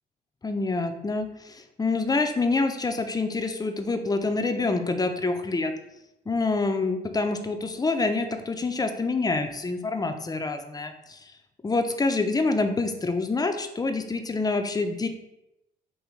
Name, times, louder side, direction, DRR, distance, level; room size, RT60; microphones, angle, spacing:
voice 1, 0.4-5.7 6.3-11.3 11.6-15.1, left 3 dB, 20° left, 6 dB, 0.5 m, -26 dB
5.0 x 2.9 x 3.1 m, 0.89 s
cardioid pair, 90°, 20 cm